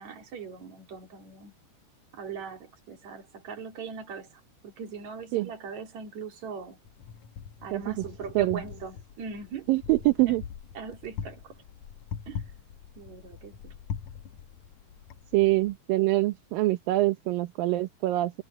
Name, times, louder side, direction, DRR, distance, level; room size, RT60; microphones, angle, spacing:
voice 1, 0.0-1.5 2.1-6.8 7.6-9.7 10.3-10.4 10.8-11.6 12.3-12.5 13.0-13.7, right 5 dB, 45° right, 3.8 m, -40 dB
Wind, 6.8-15.8, left 7 dB, 85° left, 1.6 m, -42 dB
voice 2, 9.7-10.4 15.3-18.3, right 18 dB, 70° right, 2.3 m, -24 dB
omnidirectional pair, 4.9 m